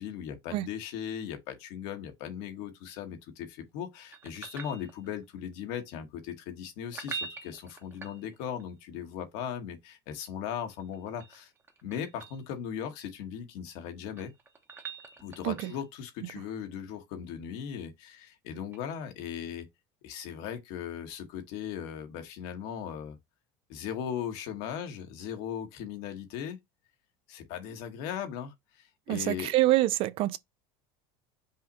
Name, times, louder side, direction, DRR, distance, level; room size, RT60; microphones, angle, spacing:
voice 1, 0.0-11.5 11.8-14.3 15.2-19.7 20.0-23.2 23.7-26.6 27.3-29.5, left 8 dB, 65° left, 1.1 m, -38 dB
sound 1, 4.1-5.3 6.8-8.7 10.8-12.4 13.9-16.0 18.7-18.8, right 5 dB, 20° right, 0.9 m, -44 dB
voice 2, 29.1-30.4, right 16 dB, 45° right, 0.3 m, -26 dB
5.5 x 2.2 x 3.9 m
supercardioid pair, 125°, 13 cm